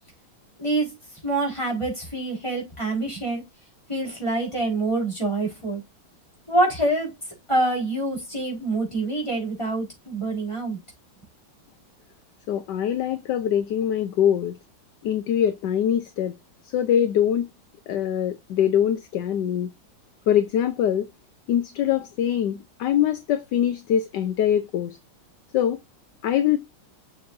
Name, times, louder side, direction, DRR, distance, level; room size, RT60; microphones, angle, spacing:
voice 1, 0.6-0.9 1.2-3.4 3.9-5.8 6.5-7.1 7.5-10.8, right 2 dB, 15° left, 4.6 m, -26 dB
voice 2, 12.5-14.6 15.0-16.3 16.7-17.5 17.9-19.7 20.3-21.1 21.5-25.0 25.5-25.8 26.2-26.6, left 10 dB, 65° left, 1.2 m, -23 dB
7.0 x 6.6 x 2.6 m
omnidirectional pair, 2.3 m